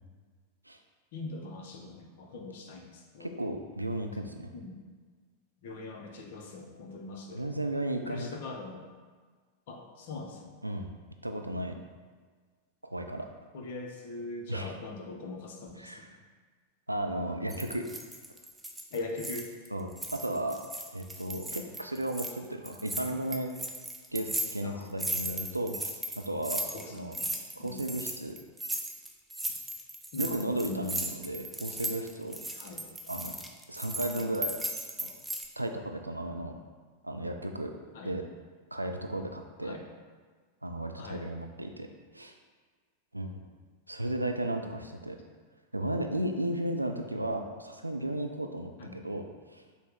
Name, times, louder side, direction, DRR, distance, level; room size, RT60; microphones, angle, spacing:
voice 1, 1.1-3.3 4.5-4.8 5.6-7.4 8.1-8.8 9.7-10.6 13.5-16.1 18.9-19.5 24.6-24.9 26.7-27.3 27.6-27.8 30.1-30.9 32.6-32.9 37.9-38.1 39.6-39.9 41.0-41.2 48.8-49.0, left 3 dB, 55° left, 2 dB, 0.6 m, -41 dB
voice 2, 3.2-4.5 6.6-6.7 7.3-8.3 10.6-10.9 11.2-11.8 12.8-13.3 14.5-14.7 15.8-16.2 16.9-17.9 19.7-20.6 20.9-23.6 24.1-27.2 27.6-28.4 30.2-32.4 33.1-33.3 33.7-34.5 35.0-35.1 35.6-36.5 37.0-37.7 38.0-38.2 38.7-39.8 40.6-41.9 42.1-42.3 43.1-43.4 43.9-45.2 45.7-49.6, right 1 dB, 85° right, 4 dB, 0.3 m, -34 dB
sound 1, 17.5-19.7 19.9-22.3 22.6-35.5, right 1 dB, 5° right, 0.4 m, -37 dB
5.4 x 2.0 x 3.5 m, 1.5 s
figure-of-eight pair, 90°, 0 cm